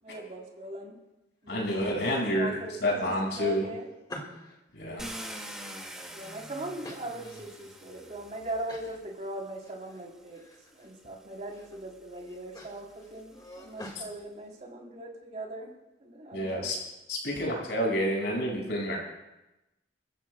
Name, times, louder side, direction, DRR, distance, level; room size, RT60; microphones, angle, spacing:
voice 1, 0.0-1.0 1.4-1.8 2.2-3.9 6.1-10.4 10.7-15.7 16.0-16.7, right 1 dB, 40° right, -1 dB, 3.4 m, -40 dB
voice 2, 1.5-3.7 4.7-5.1 16.3-16.8 17.1-19.0, equal, 70° left, -1 dB, 5.8 m, -29 dB
sound 1, 1.5-2.2 2.6-4.6 5.1-6.3 6.8-7.7 8.1-8.2 8.7-9.0 9.4-10.0 10.3-10.9 11.3-11.8 12.1-14.0, left 1 dB, 25° left, 1.9 m, -47 dB
Car, 5.0-9.1 10.1-10.2 10.7-14.0, equal, 5° right, 2.0 m, -45 dB
28.0 x 14.5 x 2.2 m, 0.97 s
head